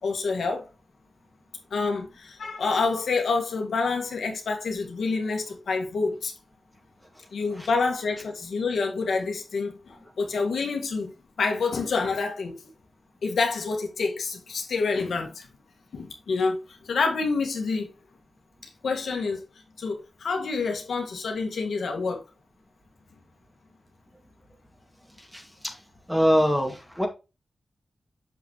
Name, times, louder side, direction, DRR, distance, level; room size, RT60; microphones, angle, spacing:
voice 1, 0.0-0.7 1.7-6.3 7.3-11.1 11.4-12.5 13.2-15.5 15.9-16.6 16.8-17.9 18.8-19.4 19.8-22.2, left 4 dB, 90° left, 1.6 m, -27 dB
voice 2, 26.1-27.1, equal, 5° right, 2.1 m, -22 dB
7.0 x 6.0 x 3.0 m
wide cardioid pair, 75°, 0 cm